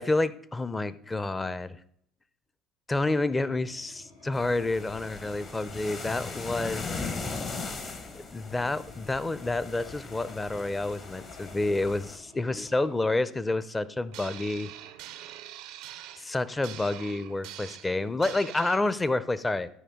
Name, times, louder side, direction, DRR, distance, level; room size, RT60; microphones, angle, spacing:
voice 1, 0.0-1.8 2.9-7.1 8.3-14.7 16.2-19.7, left 2 dB, 20° left, 16 dB, 0.6 m, -29 dB
sound 1, 3.2-13.0, left 3 dB, 80° left, 2.1 m, -53 dB
sound 2, 4.3-12.2, left 4 dB, 45° left, 1.5 m, -39 dB
sound 3, 14.1-18.8, right 13 dB, 70° right, 0.5 m, -44 dB
13.0 x 5.0 x 3.7 m, 0.69 s
hypercardioid pair, 65°, 0 cm